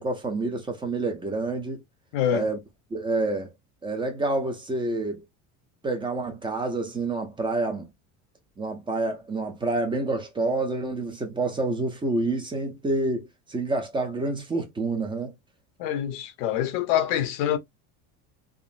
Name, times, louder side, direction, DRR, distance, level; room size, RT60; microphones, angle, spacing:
voice 1, 0.0-1.8 2.3-2.6 2.9-3.5 3.8-5.2 5.8-7.9 8.6-15.3, right 2 dB, 15° right, 0.5 m, -28 dB
voice 2, 2.1-2.5 15.8-17.6, left 10 dB, 75° left, 0.8 m, -25 dB
3.6 x 2.0 x 2.4 m
cardioid pair, 155°, 36 cm